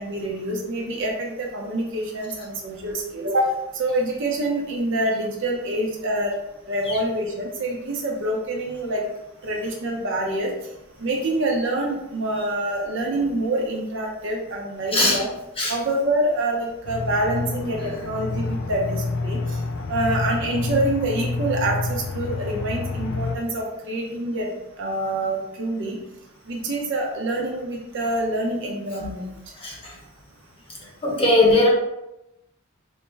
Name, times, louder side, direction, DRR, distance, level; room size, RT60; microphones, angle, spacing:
voice 1, 0.0-6.4 6.7-9.0 9.4-10.5 11.0-15.3 15.7-19.6 19.9-24.5 24.8-26.0 26.5-29.3, right 1 dB, 60° right, -1 dB, 0.7 m, -26 dB
Aircraft, 16.8-23.4, left 3 dB, 60° left, 0.5 m, -28 dB
voice 2, 31.0-31.7, left 2 dB, 25° left, -2 dB, 0.9 m, -18 dB
4.2 x 2.1 x 3.4 m, 0.90 s
head